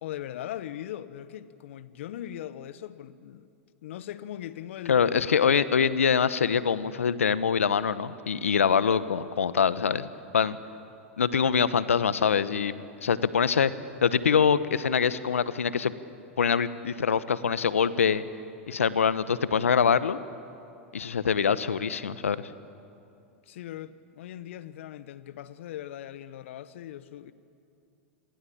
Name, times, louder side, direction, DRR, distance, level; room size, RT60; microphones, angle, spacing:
voice 1, 0.0-3.5 3.8-5.0 23.5-27.3, left 12 dB, 65° left, 1.2 m, -39 dB
voice 2, 4.9-10.1 10.3-10.6 11.2-13.7 14.0-15.9 16.4-18.2 18.7-20.2 20.9-22.5, left 7 dB, 85° left, 1.0 m, -24 dB
28.0 x 22.0 x 8.6 m
hypercardioid pair, 100°, 7 cm